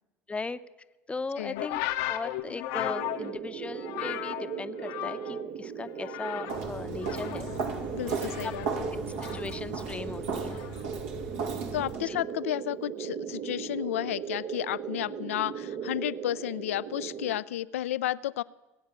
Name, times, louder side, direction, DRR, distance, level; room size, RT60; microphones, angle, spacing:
voice 1, 0.3-0.6 1.1-1.8 2.1-7.5 8.0-9.0 9.3-10.6 12.1-12.2, left 3 dB, 15° left, 13 dB, 0.7 m, -38 dB
sound 1, 1.6-5.5 5.8-6.7 7.0-9.6 10.5-10.8, left 14 dB, 70° left, 0.8 m, -36 dB
sound 2, 2.7-17.4, right 7 dB, 50° right, 0.8 m, -38 dB
Walk footsteps, 6.5-12.0, right 4 dB, 80° right, 2.0 m, -36 dB
voice 2, 7.9-8.7 11.7-18.4, left 13 dB, 85° left, 18 dB, 0.4 m, -32 dB
19.5 x 8.8 x 6.7 m, 1.1 s
hypercardioid pair, 80°, 7 cm